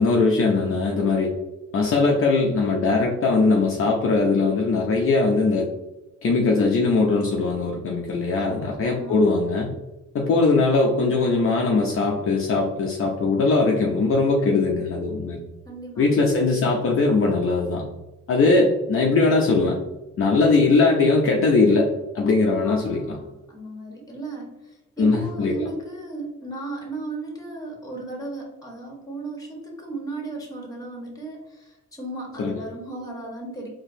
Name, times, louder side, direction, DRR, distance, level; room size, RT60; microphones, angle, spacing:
voice 1, 0.0-1.3 1.7-5.7 6.2-9.7 10.1-15.4 16.0-17.8 18.3-19.8 20.2-23.2 25.0-25.7 32.4-32.5, left 3 dB, 45° left, -1 dB, 0.6 m, -20 dB
voice 2, 8.3-9.2 15.6-16.1 22.6-33.7, right 2 dB, 10° left, 0 dB, 1.3 m, -36 dB
4.2 x 2.9 x 2.7 m, 1.0 s
cardioid pair, 90°, 30 cm